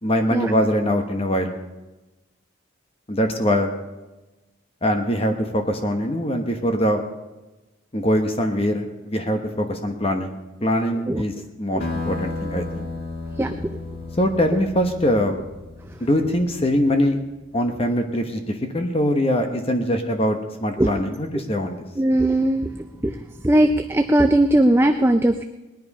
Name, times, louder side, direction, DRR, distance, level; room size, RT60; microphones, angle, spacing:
voice 1, 0.0-1.5 3.1-3.7 4.8-7.0 7.9-10.3 10.6-11.3 11.6-12.9 14.2-15.4 16.0-17.2 17.5-21.8, equal, 30° left, 5 dB, 1.1 m, -22 dB
sound 1, 11.8-16.9, left 3 dB, 45° left, 2.5 m, -33 dB
voice 2, 13.4-13.8 20.8-20.9 22.0-22.7 23.0-23.2 23.4-25.4, right 1 dB, 10° right, 7 dB, 0.4 m, -19 dB
20.0 x 10.0 x 5.4 m, 1.1 s
head